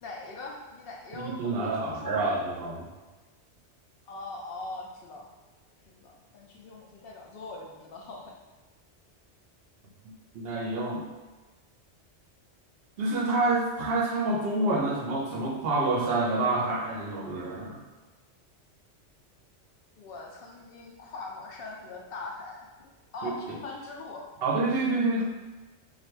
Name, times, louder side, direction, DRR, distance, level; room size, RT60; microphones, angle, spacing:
voice 1, 0.0-2.4 4.1-5.3 6.0-8.3 20.0-22.7 23.1-24.2, left 3 dB, 65° left, -1 dB, 0.7 m, -41 dB
voice 2, 1.1-2.9 10.0-11.1 13.0-17.8 23.2-23.3 24.4-25.2, right 2 dB, 65° right, 0 dB, 0.7 m, -28 dB
3.1 x 2.5 x 4.3 m, 1.2 s
omnidirectional pair, 1.2 m